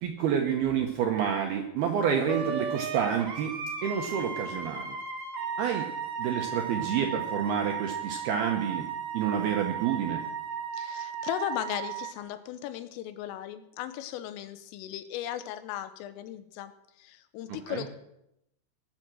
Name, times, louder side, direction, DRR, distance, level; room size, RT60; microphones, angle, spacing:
voice 1, 0.0-3.6 3.8-5.0 5.6-5.9 6.2-8.9 9.1-10.2 17.7-17.8, right 8 dB, 75° right, 3 dB, 2.4 m, -28 dB
Wind instrument woodwind instrument, 2.3-12.1, right 6 dB, 45° right, 1.9 m, -35 dB
voice 2, 10.7-16.7 17.0-17.9, left 11 dB, 85° left, 11 dB, 3.4 m, -37 dB
20.5 x 8.0 x 6.2 m, 0.83 s
omnidirectional pair, 5.8 m